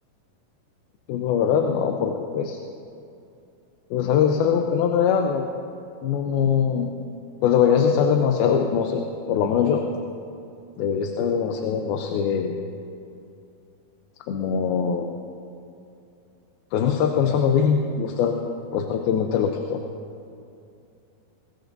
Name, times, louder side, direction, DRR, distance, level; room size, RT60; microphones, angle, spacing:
voice 1, 1.1-2.6 3.9-5.5 6.0-6.9 7.4-9.8 10.8-12.6 14.3-15.2 16.7-18.4 18.7-19.8, left 7 dB, 85° left, 4 dB, 2.6 m, -22 dB
21.5 x 18.5 x 2.6 m, 2.6 s
omnidirectional pair, 4.3 m